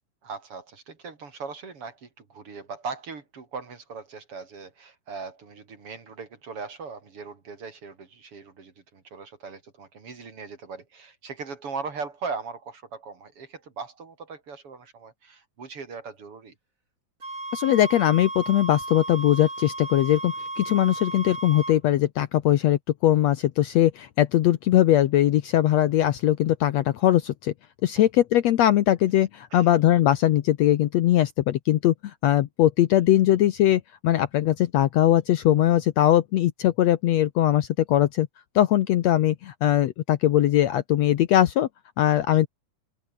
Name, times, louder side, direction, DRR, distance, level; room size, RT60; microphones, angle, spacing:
voice 1, 0.2-16.5 28.0-28.1 29.5-29.7 42.3-42.4, right 5 dB, 45° right, 3.8 m, -39 dB
sound 1, 17.2-21.8, right 2 dB, 25° right, 6.1 m, -34 dB
voice 2, 17.5-27.5 27.8-38.3 38.6-41.7 42.0-42.5, left 12 dB, 70° left, 1.8 m, -21 dB
open air
omnidirectional pair, 3.7 m